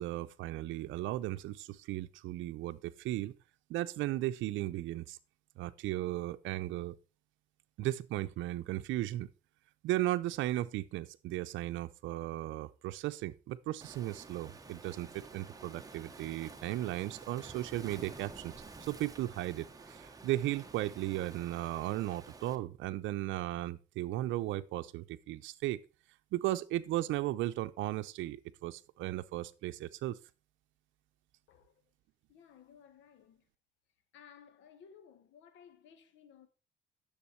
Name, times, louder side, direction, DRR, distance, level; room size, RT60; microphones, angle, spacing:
voice 1, 0.0-3.3 3.7-5.2 5.6-7.0 7.8-9.3 9.8-18.5 18.8-25.8 26.3-30.2, right 15 dB, 80° right, 0.7 m, -36 dB
Waves surf, 13.8-22.6, right 3 dB, 20° right, 1.3 m, -51 dB
voice 2, 31.5-31.8 32.3-33.5 34.1-36.5, left 7 dB, 75° left, 1.5 m, -58 dB
10.0 x 7.2 x 4.5 m
cardioid pair, 95°, 20 cm